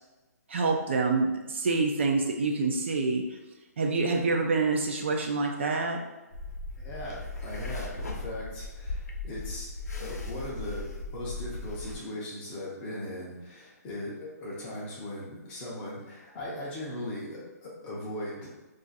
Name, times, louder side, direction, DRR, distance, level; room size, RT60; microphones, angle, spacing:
voice 1, 0.5-3.2 3.8-6.0, right 3 dB, 45° right, 2 dB, 0.4 m, -26 dB
sound 1, 6.3-12.0, left 3 dB, 65° left, 0.6 m, -37 dB
voice 2, 6.8-18.5, left 1 dB, 15° left, -5 dB, 0.5 m, -39 dB
2.4 x 2.4 x 3.9 m, 1.1 s
hypercardioid pair, 165°, 9 cm